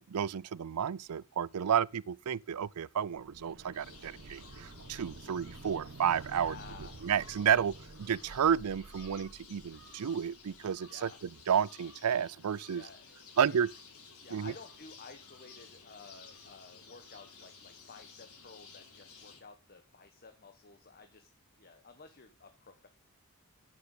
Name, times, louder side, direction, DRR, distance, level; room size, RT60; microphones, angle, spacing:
voice 1, 0.0-6.5 7.0-11.1 11.5-12.8 13.4-13.7 14.3-14.5, right 8 dB, 85° right, 0.5 m, -31 dB
sound 1, 3.1-10.9 11.2-11.3, right 3 dB, 55° right, 1.0 m, -51 dB
sound 2, 3.7-19.4, left 4 dB, 75° left, 6.2 m, -54 dB
voice 2, 6.4-7.0 10.9-11.2 12.7-13.6 14.2-21.3 21.6-22.9, left 4 dB, 45° left, 1.3 m, -53 dB
11.5 x 9.3 x 3.9 m
head